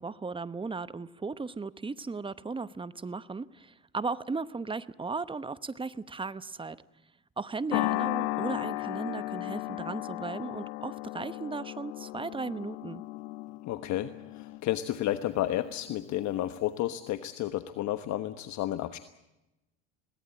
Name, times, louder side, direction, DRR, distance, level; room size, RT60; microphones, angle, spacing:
voice 1, 0.0-6.8 7.4-13.0, right 4 dB, 15° right, 16 dB, 0.9 m, -36 dB
sound 1, 7.7-16.2, left 19 dB, 75° left, 0.7 m, -35 dB
voice 2, 13.7-19.0, left 13 dB, 50° left, 10 dB, 1.3 m, -31 dB
22.0 x 18.5 x 8.7 m, 0.95 s
hypercardioid pair, 85°, 36 cm